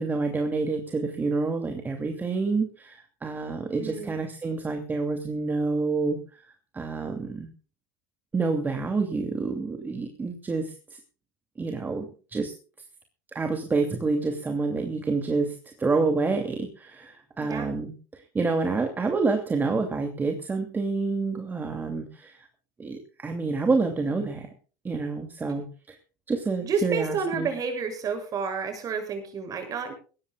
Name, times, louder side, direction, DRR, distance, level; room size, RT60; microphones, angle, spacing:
voice 1, 0.0-7.5 8.3-11.0 11.6-12.5 13.3-22.5 22.8-24.5 24.8-26.0 26.3-27.5, right 3 dB, 15° right, 5 dB, 2.6 m, -28 dB
voice 2, 3.8-4.2 17.4-17.7 26.6-30.0, right 5 dB, 35° right, 6 dB, 7.3 m, -30 dB
22.0 x 18.0 x 2.4 m, 0.37 s
supercardioid pair, 130°, 11 cm